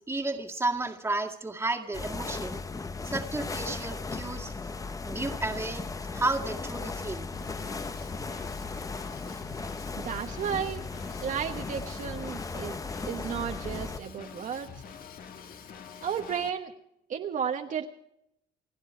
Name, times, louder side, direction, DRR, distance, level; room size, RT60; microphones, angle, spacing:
voice 1, 0.0-2.6 3.1-4.5 5.0-5.8 6.1-7.3, right 2 dB, 15° right, 4 dB, 2.0 m, -32 dB
sound 1, 1.9-14.0, left 4 dB, 20° left, 0.9 m, -37 dB
Drum kit / Drum, 7.3-16.5, left 6 dB, 60° left, 1.9 m, -46 dB
voice 2, 10.0-10.8 11.2-14.8 16.0-16.7 17.1-17.9, right 7 dB, 50° right, 4 dB, 1.2 m, -33 dB
28.5 x 9.9 x 4.5 m, 0.79 s
cardioid pair, 110°, 17 cm